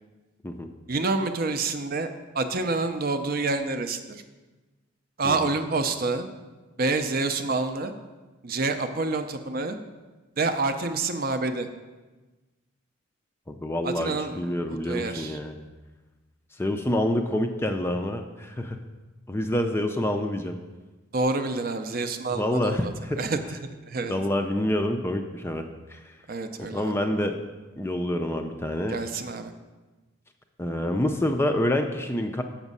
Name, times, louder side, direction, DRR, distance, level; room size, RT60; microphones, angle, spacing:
voice 1, 0.9-2.1 2.3-4.2 5.2-6.3 6.8-7.9 8.4-9.8 10.4-11.7 13.8-15.4 21.1-22.9 23.2-23.6 23.9-24.1 26.3-27.0 28.9-29.5, right 3 dB, 45° right, 8 dB, 0.5 m, -28 dB
voice 2, 13.5-15.5 16.5-18.8 19.3-20.6 22.3-23.2 24.1-26.2 26.6-27.4 27.8-29.0 30.6-32.4, left 1 dB, 10° left, 5 dB, 0.4 m, -27 dB
7.2 x 6.0 x 5.4 m, 1.2 s
head